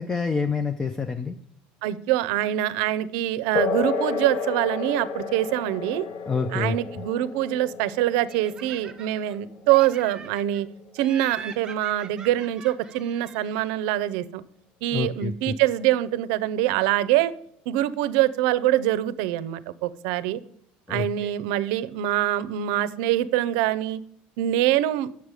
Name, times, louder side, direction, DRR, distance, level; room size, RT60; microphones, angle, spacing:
voice 1, 0.0-1.4 6.3-6.8 14.9-15.5 20.9-21.3, left 4 dB, 10° left, 10 dB, 0.3 m, -27 dB
voice 2, 1.8-6.1 6.5-10.7 10.9-14.4 14.8-17.3 17.7-20.4 20.9-24.0 24.4-25.1, right 13 dB, 80° right, 16 dB, 0.5 m, -24 dB
sound 1, 3.5-11.6, left 5 dB, 40° left, 0.8 m, -32 dB
Laughter, 8.3-9.4 9.7-10.6 11.0-13.8, right 5 dB, 20° right, 0.7 m, -43 dB
9.0 x 6.9 x 4.8 m, 0.68 s
cardioid pair, 170°, 4 cm